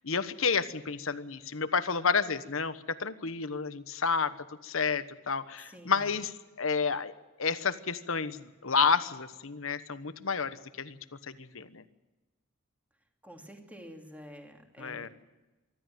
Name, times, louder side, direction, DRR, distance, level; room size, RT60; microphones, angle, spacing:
voice 1, 0.0-4.3 4.6-6.3 6.6-7.1 7.4-11.0 11.3-11.8 14.8-15.1, left 5 dB, 65° left, 12 dB, 1.2 m, -30 dB
voice 2, 5.6-6.2 13.2-15.1, equal, 5° right, 3 dB, 2.8 m, -49 dB
24.5 x 13.0 x 9.1 m, 1.1 s
head